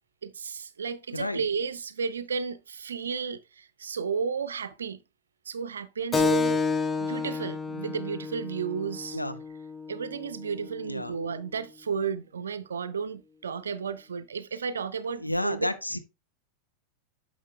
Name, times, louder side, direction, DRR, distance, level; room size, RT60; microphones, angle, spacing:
voice 1, 0.2-5.0 5.5-6.6 7.0-9.2 9.9-15.7, right 6 dB, 70° right, 0.5 m, -33 dB
Keyboard (musical), 6.1-11.2, left 4 dB, 15° left, 0.5 m, -30 dB
voice 2, 15.2-16.0, left 1 dB, 85° left, 0.6 m, -30 dB
10.0 x 6.2 x 2.2 m
figure-of-eight pair, 90°, 0 cm